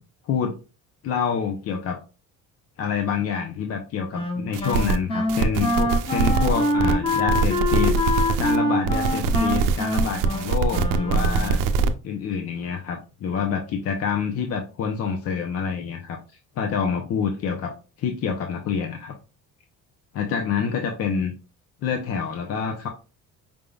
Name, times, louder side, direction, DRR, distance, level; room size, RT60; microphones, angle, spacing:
voice 1, 0.3-0.6 1.0-2.0 2.8-8.0 8.4-11.6 12.0-16.2 16.6-17.7 18.0-19.1 20.1-21.4 21.8-22.9, left 6 dB, 45° left, 3 dB, 0.7 m, -27 dB
Wind instrument woodwind instrument, 4.1-11.6, left 2 dB, 15° left, 0.9 m, -25 dB
sound 1, 4.5-5.0 5.3-8.6 8.8-11.9, right 5 dB, 75° right, 0.7 m, -23 dB
5.1 x 3.6 x 2.3 m, 0.33 s
cardioid pair, 175°, 33 cm